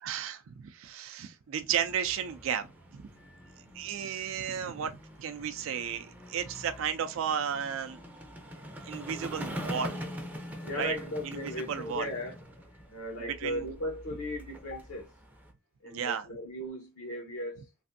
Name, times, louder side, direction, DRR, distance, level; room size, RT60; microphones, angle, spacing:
voice 1, 0.0-3.1 3.7-4.9 5.2-8.0 8.8-10.0 10.7-10.9 11.2-12.1 13.4-13.7 15.8-16.3, right 8 dB, 70° right, 0.4 m, -34 dB
sound 1, 1.7-15.5, equal, 10° right, 0.4 m, -44 dB
voice 2, 3.2-3.5 10.4-12.3 12.7-15.1 15.8-17.7, left 1 dB, 80° left, 0.8 m, -37 dB
3.2 x 2.5 x 2.5 m
head